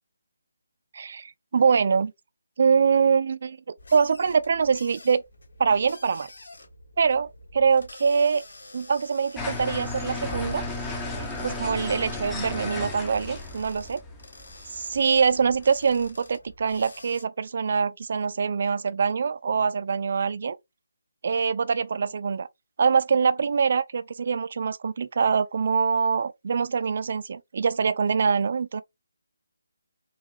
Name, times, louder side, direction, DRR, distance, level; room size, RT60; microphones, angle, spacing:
voice 1, 0.9-2.1 2.6-3.6 3.9-5.2 5.6-6.3 7.0-8.4 8.7-10.6 11.4-14.0 14.8-20.6 21.2-22.5 22.8-28.8, right 5 dB, 50° right, 0.4 m, -24 dB
sound 1, 3.8-17.2, left 2 dB, 75° left, 1.6 m, -48 dB
sound 2, 9.4-16.1, left 2 dB, 10° left, 0.6 m, -34 dB
4.0 x 2.3 x 2.7 m
figure-of-eight pair, 155°, 0 cm